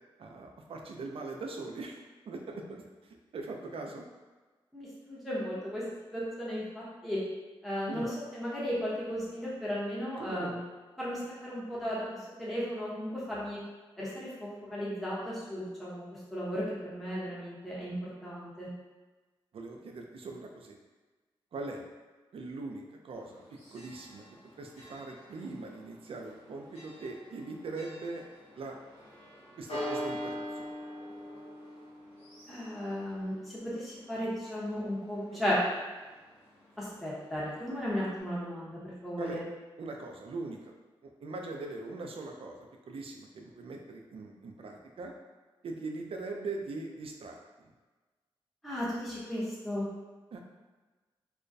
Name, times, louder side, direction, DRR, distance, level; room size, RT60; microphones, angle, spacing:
voice 1, 0.2-4.1 7.9-8.1 10.2-10.6 19.5-20.8 21.5-21.8 22.3-24.2 24.6-28.2 28.5-28.8 29.6-30.7 35.3-35.4 39.2-39.4 39.8-40.7 41.0-45.1 45.6-47.7 50.3-50.4, right 3 dB, 65° right, 2 dB, 0.4 m, -41 dB
voice 2, 4.7-5.8 6.1-7.2 7.6-8.1 8.3-10.6 11.0-12.0 12.4-13.6 14.0-16.0 16.3-18.7 32.5-35.6 36.8-39.4 48.6-49.8, equal, ahead, -8 dB, 0.8 m, -35 dB
Church bell, 23.1-38.2, equal, 80° left, 0.8 m, -45 dB
2.3 x 2.1 x 2.6 m, 1.3 s
supercardioid pair, 45°, 10 cm